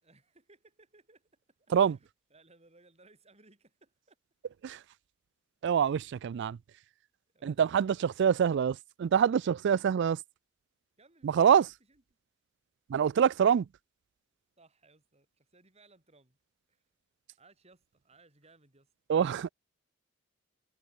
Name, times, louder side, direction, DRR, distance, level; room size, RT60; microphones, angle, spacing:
voice 1, 0.0-4.2 9.7-10.0 11.0-12.0 14.6-16.4 16.7-16.9 17.4-18.9, right 3 dB, 30° right, 4.9 m, -63 dB
voice 2, 5.6-6.6 7.4-10.2 11.2-11.6 12.9-13.7 19.1-19.5, right 8 dB, 60° right, 0.3 m, -25 dB
head